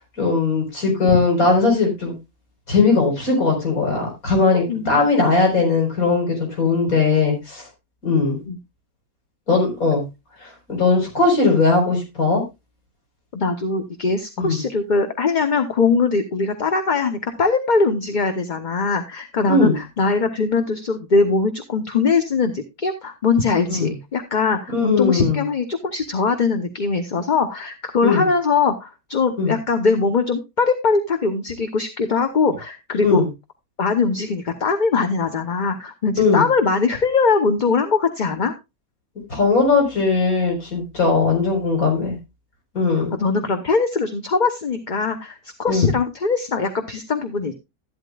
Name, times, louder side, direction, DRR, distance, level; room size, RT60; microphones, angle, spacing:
voice 1, 0.2-2.1 2.7-7.6 8.0-8.4 9.5-10.0 10.4-12.4 14.4-14.6 19.5-19.8 23.7-23.9 24.7-25.4 28.0-28.2 29.4-29.5 33.0-33.3 36.2-36.4 39.3-42.2 42.7-43.2 45.7-45.9, left 4 dB, 70° left, 1 dB, 4.9 m, -19 dB
voice 2, 13.3-33.2 33.8-38.5 43.1-47.5, left 4 dB, 35° left, 8 dB, 1.0 m, -21 dB
12.5 x 11.5 x 2.3 m, 0.24 s
omnidirectional pair, 1.6 m